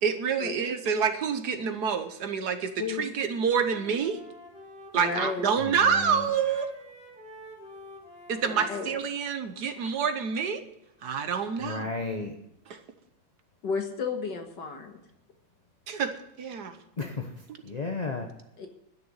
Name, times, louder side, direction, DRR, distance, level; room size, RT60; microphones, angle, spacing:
voice 1, 0.0-4.2 4.9-6.7 8.3-10.6 11.0-11.9 12.7-12.8 15.9-16.8, right 6 dB, 60° right, 8 dB, 1.5 m, -27 dB
Wind instrument woodwind instrument, 2.8-3.2 3.5-10.1, equal, 5° right, 3.3 m, -49 dB
voice 2, 4.9-5.5 8.4-9.0 13.6-15.0 18.6-18.7, left 5 dB, 65° left, 5 dB, 2.1 m, -33 dB
voice 3, 5.6-6.3 11.6-12.3 17.0-17.3 17.6-18.3, left 3 dB, 35° left, 3 dB, 0.7 m, -33 dB
12.0 x 6.8 x 9.6 m, 0.83 s
omnidirectional pair, 2.0 m